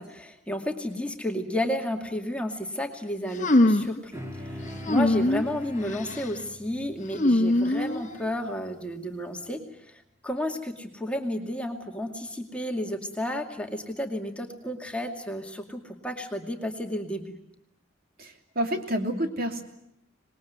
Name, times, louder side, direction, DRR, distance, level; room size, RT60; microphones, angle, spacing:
voice 1, 0.0-4.1 4.4-9.6 10.2-17.3, left 1 dB, 5° left, 3 dB, 2.3 m, -32 dB
sound 1, 3.4-4.0 4.8-5.5 5.9-6.3 7.1-8.3, left 1 dB, 40° left, 1.3 m, -23 dB
sound 2, 4.1-8.9, left 1 dB, 15° right, 4.1 m, -43 dB
voice 2, 18.2-19.6, right 1 dB, 50° right, 4 dB, 3.0 m, -29 dB
26.0 x 20.5 x 9.4 m, 0.78 s
head